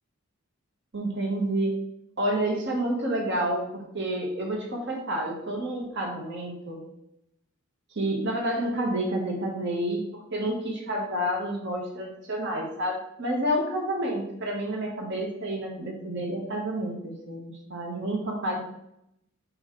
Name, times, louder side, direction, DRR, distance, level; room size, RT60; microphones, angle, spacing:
voice 1, 0.9-1.7 2.2-6.8 7.9-18.6, right 1 dB, 55° right, 0 dB, 1.3 m, -29 dB
5.3 x 4.0 x 4.6 m, 0.79 s
head